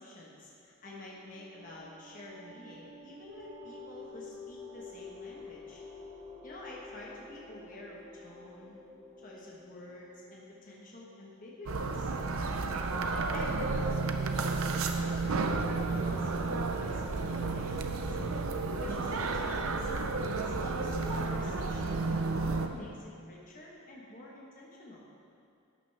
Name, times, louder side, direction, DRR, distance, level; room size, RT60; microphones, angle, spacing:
voice 1, 0.0-5.8 6.4-8.8 9.2-12.1 12.8-18.2 18.8-19.9 20.4-25.0, left 1 dB, 40° left, -4 dB, 1.3 m, -48 dB
sound 1, 0.8-11.0, left 3 dB, 35° right, 1.8 m, -50 dB
sound 2, 11.7-22.7, right 3 dB, 75° right, 0.6 m, -32 dB
12.0 x 9.1 x 3.4 m, 2.4 s
head